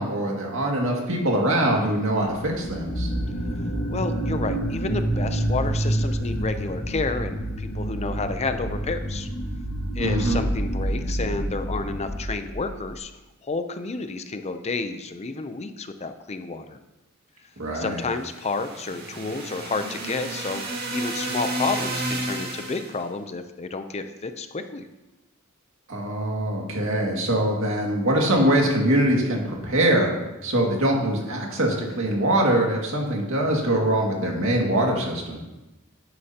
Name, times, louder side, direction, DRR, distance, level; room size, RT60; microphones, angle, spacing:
voice 1, 0.0-3.1 10.0-10.4 17.6-18.0 25.9-30.1 30.4-35.4, right 1 dB, 65° right, -1 dB, 2.1 m, -23 dB
sound 1, 2.4-12.9, right 1 dB, 75° left, 1.8 m, -28 dB
voice 2, 3.9-9.3 10.0-13.1 13.4-16.8 17.7-20.6 20.9-24.9, left 3 dB, 30° left, 9 dB, 0.5 m, -30 dB
sound 2, 18.1-23.0, right 1 dB, 50° right, 2.0 m, -31 dB
11.0 x 9.8 x 2.9 m, 1.0 s
head